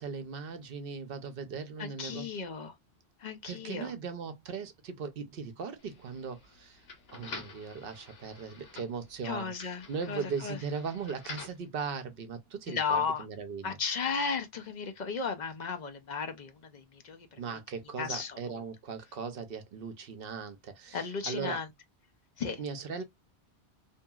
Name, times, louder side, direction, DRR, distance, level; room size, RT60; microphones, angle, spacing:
voice 1, 0.0-2.3 3.4-6.8 7.1-13.8 17.4-21.6 22.6-23.0, right 5 dB, 65° right, 0.8 m, -38 dB
voice 2, 1.8-2.7 3.2-3.9 9.2-10.6 12.7-13.2 13.6-17.4 18.0-18.6 20.9-21.7 22.4-22.6, left 5 dB, 50° left, 0.6 m, -35 dB
sound 1, 5.8-11.7, left 4 dB, 70° left, 1.2 m, -48 dB
2.8 x 2.7 x 2.2 m
omnidirectional pair, 1.1 m